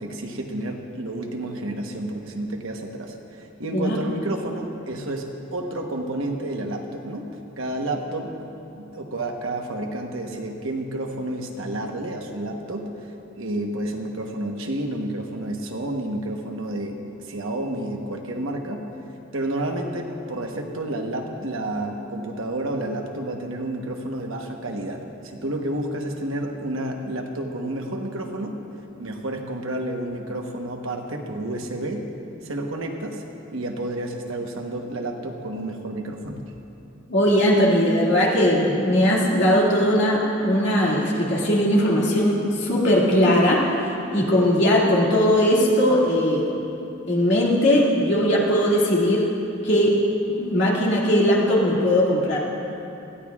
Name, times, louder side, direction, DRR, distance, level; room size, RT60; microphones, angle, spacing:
voice 1, 0.0-7.3 7.6-8.5 8.7-17.0 17.3-18.9 19.3-25.0 25.3-28.5 29.0-32.0 32.4-33.2 33.5-36.4, right 1 dB, 70° right, 2 dB, 1.1 m, -30 dB
voice 2, 37.1-43.7 44.1-46.5 47.1-49.3 49.6-50.0 50.3-52.4, equal, 55° left, -5 dB, 2.2 m, -19 dB
19.5 x 14.0 x 2.4 m, 2.9 s
head